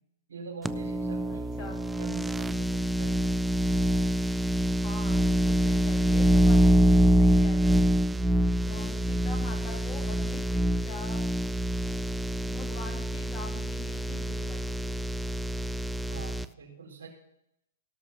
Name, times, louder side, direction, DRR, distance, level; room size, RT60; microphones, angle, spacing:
voice 1, 0.3-1.7 2.0-3.4 16.1-17.1, right 5 dB, 85° right, 0 dB, 4.3 m, -44 dB
sound 1, 0.6-16.4, equal, 5° right, 0.3 m, -25 dB
voice 2, 1.3-1.8 4.8-7.8 8.7-11.3 12.4-14.9, left 3 dB, 20° left, 0 dB, 2.9 m, -44 dB
17.5 x 6.2 x 5.4 m, 0.79 s
hypercardioid pair, 140°, 0 cm